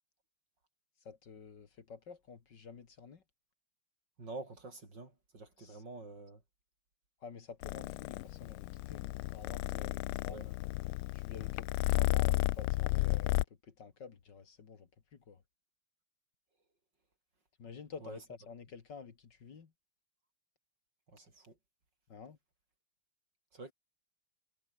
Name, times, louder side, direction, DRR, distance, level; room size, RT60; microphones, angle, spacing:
voice 1, 1.0-3.2 5.6-5.8 7.2-10.7 11.1-15.4 17.6-19.7 22.1-22.4, left 5 dB, 55° left, 2.5 m, -51 dB
voice 2, 4.2-6.4 10.3-10.4 18.0-18.2 21.1-21.5 23.5-23.7, right 2 dB, 55° right, 6.2 m, -47 dB
Purr, 7.6-13.4, left 17 dB, 85° left, 1.5 m, -33 dB
omnidirectional pair, 2.3 m